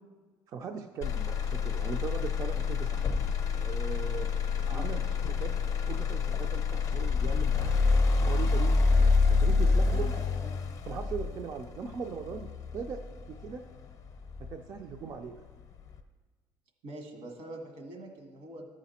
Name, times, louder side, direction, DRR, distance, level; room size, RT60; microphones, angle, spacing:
voice 1, 0.5-3.0 3.5-4.3 4.7-5.5 5.9-7.7 8.2-10.1 10.9-13.0 13.3-13.6 14.4-15.4, right 6 dB, 40° right, 5 dB, 0.4 m, -39 dB
Motor vehicle (road), 1.0-15.0 15.5-16.0, left 4 dB, 40° left, 0.6 m, -28 dB
voice 2, 9.6-10.5 11.2-11.3 16.8-18.7, right 2 dB, 80° right, 2 dB, 1.8 m, -44 dB
13.5 x 5.0 x 4.2 m, 1.4 s
cardioid pair, 150°, 9 cm